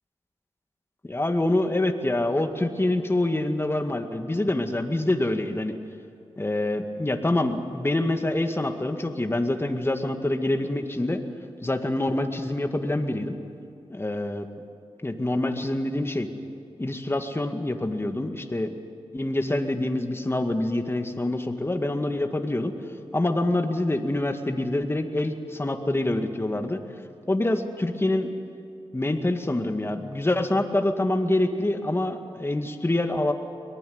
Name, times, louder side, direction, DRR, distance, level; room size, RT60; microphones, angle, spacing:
voice 1, 1.1-5.7 6.4-11.2 11.6-13.4 13.9-14.5 15.0-16.3 16.8-18.8 19.1-22.7 23.1-26.8 27.3-28.3 28.9-33.3, left 1 dB, 20° left, 6 dB, 2.0 m, -26 dB
23.5 x 19.0 x 9.5 m, 2.4 s
cardioid pair, 55°, 11 cm